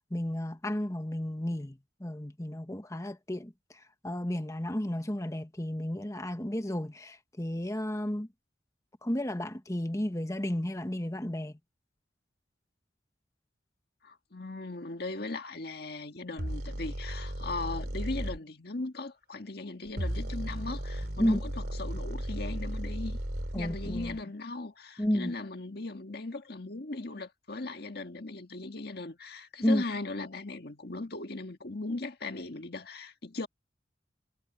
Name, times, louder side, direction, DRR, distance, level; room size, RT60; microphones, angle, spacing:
voice 1, 0.1-8.3 9.0-11.6 21.2-21.4 23.5-24.2 25.0-25.3 29.6-29.8, left 1 dB, 15° left, 1.2 m, -32 dB
voice 2, 14.0-21.5 21.8-23.2 23.5-33.5, left 2 dB, 60° left, 1.8 m, -38 dB
sound 1, 16.4-18.4 19.9-24.2, equal, 60° right, 2.9 m, -35 dB
head